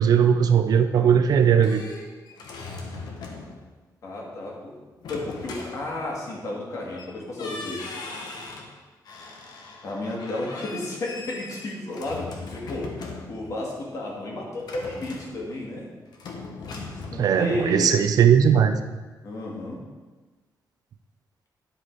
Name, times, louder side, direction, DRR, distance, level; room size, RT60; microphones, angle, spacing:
voice 1, 0.0-1.8 17.2-18.8, right 8 dB, 60° right, 8 dB, 0.5 m, -18 dB
sound 1, 1.4-3.7 5.0-6.3 7.0-7.1 7.4-8.7 9.0-13.6 14.6-15.8 16.1-17.1, left 3 dB, 70° left, 1.2 m, -39 dB
voice 2, 4.0-4.8 5.1-7.8 9.8-13.0 13.3-15.8 16.7-18.0 19.2-19.8, left 2 dB, 50° left, -2 dB, 2.0 m, -32 dB
10.5 x 5.1 x 4.6 m, 1.3 s
wide cardioid pair, 165°, 7 cm